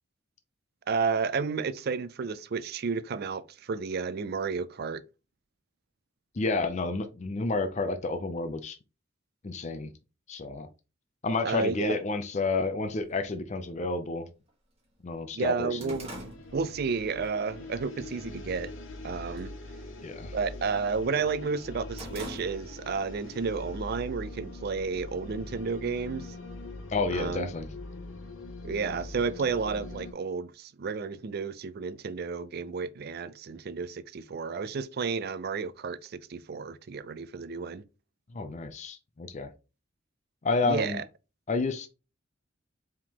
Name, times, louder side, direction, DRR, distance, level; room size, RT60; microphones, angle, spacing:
voice 1, 0.9-5.0 11.4-12.0 15.3-18.7 19.0-19.5 20.3-26.3 27.1-27.5 28.6-37.8 40.6-41.0, right 5 dB, 50° right, 0.4 m, -32 dB
voice 2, 6.3-8.8 9.4-9.9 10.3-10.7 11.2-14.3 15.0-16.0 20.0-20.3 26.9-27.7 38.3-39.5 40.4-41.0 41.5-41.9, left 3 dB, 35° left, 0.5 m, -30 dB
sound 1, 12.9-13.0 13.9-14.0 14.5-14.6 14.9-17.3 17.7-18.0 18.5-19.0 19.2-19.6 19.9-21.1 21.5-23.0 23.3-23.4 24.3-25.2, right 1 dB, 30° right, 1.3 m, -45 dB
sound 2, 15.9-30.1, left 2 dB, 70° left, 0.8 m, -42 dB
4.8 x 3.6 x 2.9 m
head